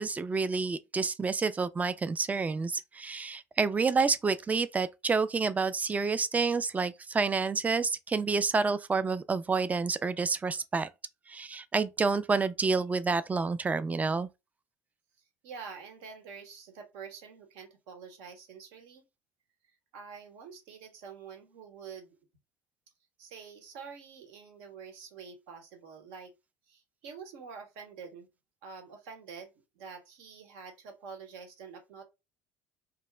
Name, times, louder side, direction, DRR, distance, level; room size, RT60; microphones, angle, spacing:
voice 1, 0.0-10.9 11.3-14.3, right 4 dB, 20° right, 0.3 m, -29 dB
voice 2, 15.4-19.0 19.9-22.2 23.2-26.3 26.7-28.3 28.6-32.0, right 6 dB, 75° right, 0.9 m, -47 dB
2.4 x 2.0 x 3.1 m
hypercardioid pair, 70°, 8 cm